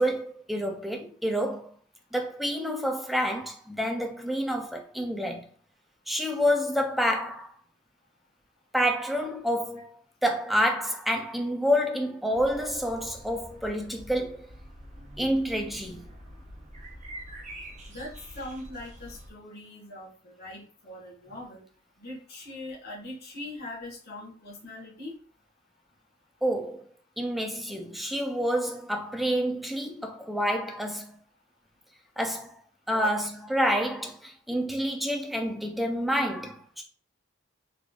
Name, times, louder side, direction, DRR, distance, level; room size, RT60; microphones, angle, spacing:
voice 1, 0.0-1.7 2.1-5.5 6.1-7.5 8.7-14.5 15.2-16.1 26.4-26.9 27.2-31.2 32.2-32.6 32.9-36.8, equal, ahead, 0.5 m, -28 dB
sound 1, 12.3-19.3, right 1 dB, 40° right, 0.9 m, -46 dB
voice 2, 17.9-21.6 22.0-25.1 32.9-33.2, left 1 dB, 55° left, 1.4 m, -40 dB
3.7 x 3.2 x 2.4 m
head